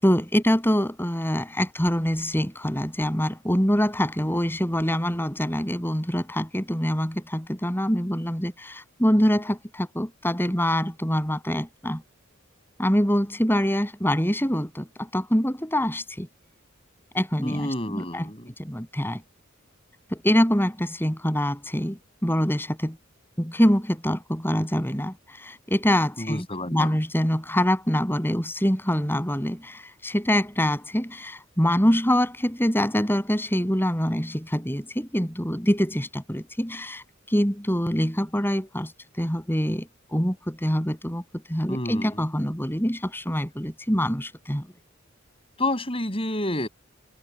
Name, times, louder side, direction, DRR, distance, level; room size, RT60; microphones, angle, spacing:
voice 1, 0.0-12.0 12.8-16.3 17.1-18.3 18.6-19.2 20.1-23.0 23.4-26.5 26.7-38.9 39.2-44.7, equal, 10° left, 7.6 m, -25 dB
voice 2, 17.4-18.5 26.2-27.0 41.7-42.1 45.6-46.7, left 1 dB, 30° left, 6.3 m, -29 dB
head